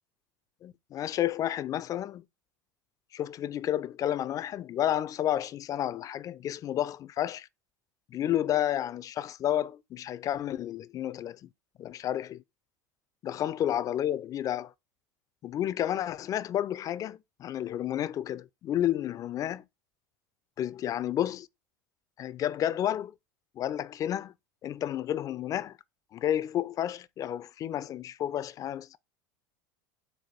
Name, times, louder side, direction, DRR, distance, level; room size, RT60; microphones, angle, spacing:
voice 1, 0.6-2.2 3.1-7.5 8.1-11.5 11.8-12.4 13.2-14.7 15.4-19.6 20.6-21.5 22.2-23.1 23.6-24.3 24.6-25.8 26.1-29.0, left 11 dB, 35° left, 0.3 m, -31 dB
4.6 x 2.2 x 4.2 m
hypercardioid pair, 85°, 10 cm